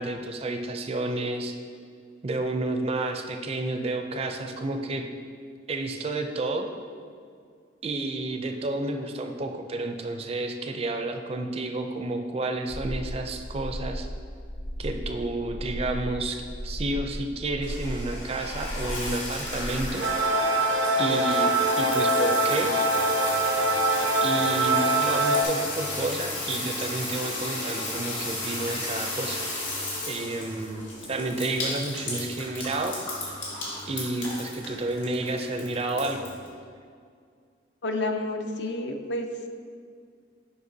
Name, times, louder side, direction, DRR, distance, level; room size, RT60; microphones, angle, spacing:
voice 1, 0.0-1.6 2.2-5.0 5.7-6.7 7.8-14.1 14.8-20.1 21.0-22.7 24.2-29.4 30.1-33.0 33.9-36.3, right 2 dB, 30° right, 5 dB, 0.4 m, -30 dB
sound 1, 12.7-19.9, equal, 45° left, 1.0 m, -35 dB
sound 2, 17.6-36.5, left 2 dB, 85° left, 1.6 m, -34 dB
sound 3, 20.0-25.4, right 2 dB, 90° right, 0.6 m, -23 dB
voice 2, 37.8-39.3, left 2 dB, 65° left, 5 dB, 0.5 m, -29 dB
7.8 x 5.5 x 2.7 m, 2.2 s
head